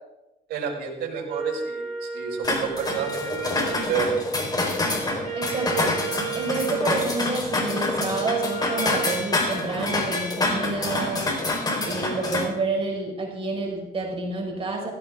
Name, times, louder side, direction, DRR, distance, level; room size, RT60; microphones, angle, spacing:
voice 1, 0.5-4.1, right 6 dB, 75° right, -1 dB, 5.0 m, -30 dB
Wind instrument woodwind instrument, 1.2-9.2, right 5 dB, 50° right, 7.0 m, -33 dB
sound 1, 2.4-12.4, left 2 dB, 25° left, 4.1 m, -27 dB
voice 2, 5.3-5.9 6.3-11.3 11.8-14.9, right 3 dB, 35° right, 0 dB, 4.9 m, -29 dB
17.0 x 16.0 x 3.6 m, 0.96 s
cardioid pair, 110°, 17 cm